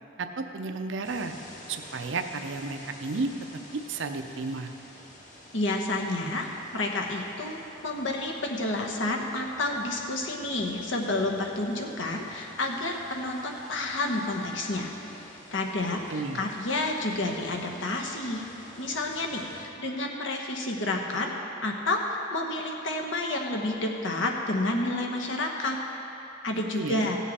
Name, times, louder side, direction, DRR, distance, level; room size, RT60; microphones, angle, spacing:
voice 1, 0.2-1.3 1.7-3.3 3.7-4.7 16.1-16.4 26.7-27.1, right 3 dB, 75° right, 7 dB, 0.6 m, -32 dB
sound 1, 1.0-19.7, left 1 dB, 40° left, 1.5 m, -50 dB
voice 2, 5.5-18.4 18.8-21.3 21.6-25.8 26.4-27.2, left 2 dB, 80° left, 1 dB, 1.2 m, -30 dB
16.0 x 7.2 x 4.3 m, 3.0 s
head